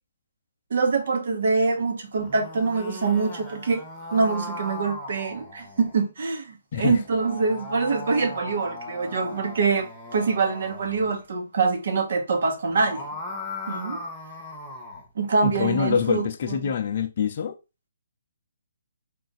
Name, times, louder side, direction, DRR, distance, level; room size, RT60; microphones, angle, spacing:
voice 1, 0.7-3.8 4.1-13.1 13.7-14.0 15.2-16.7, right 4 dB, 60° right, 1.0 m, -25 dB
sound 1, 2.1-6.0 6.9-11.2 12.6-15.1, left 2 dB, 5° left, 1.0 m, -38 dB
voice 2, 15.4-17.6, left 7 dB, 45° left, 0.5 m, -25 dB
3.8 x 2.5 x 3.9 m
hypercardioid pair, 150°, 0 cm